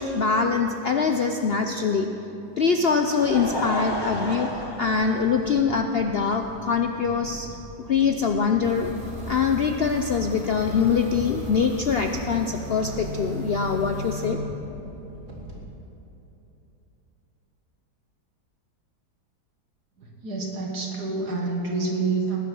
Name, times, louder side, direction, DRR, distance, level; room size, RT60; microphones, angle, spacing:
voice 1, 0.0-2.1 2.6-4.5 4.8-7.5 7.9-8.9 9.3-14.4, left 5 dB, 75° left, 4 dB, 0.5 m, -23 dB
Laughter, 2.6-5.8 6.6-6.7 8.2-8.3, left 1 dB, 15° left, 1.0 m, -32 dB
sound 1, 3.2-15.6, right 1 dB, 45° right, 3.0 m, -43 dB
sound 2, 8.6-14.3, left 2 dB, 90° right, 3.6 m, -36 dB
voice 2, 20.0-22.4, right 3 dB, 65° right, -1 dB, 2.2 m, -28 dB
19.5 x 9.5 x 6.1 m, 3.0 s
omnidirectional pair, 1.8 m